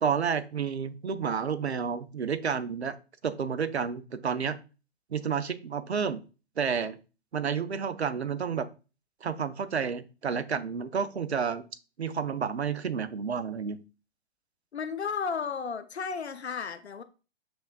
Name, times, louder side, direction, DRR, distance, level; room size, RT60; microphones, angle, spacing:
voice 1, 0.0-3.0 3.2-4.6 5.1-6.2 6.6-7.0 7.3-8.7 9.2-11.6 12.0-13.8, right 6 dB, 80° right, 0.5 m, -30 dB
voice 2, 14.7-17.0, left 6 dB, 80° left, 0.5 m, -33 dB
6.1 x 3.4 x 2.4 m
figure-of-eight pair, 115°, 33 cm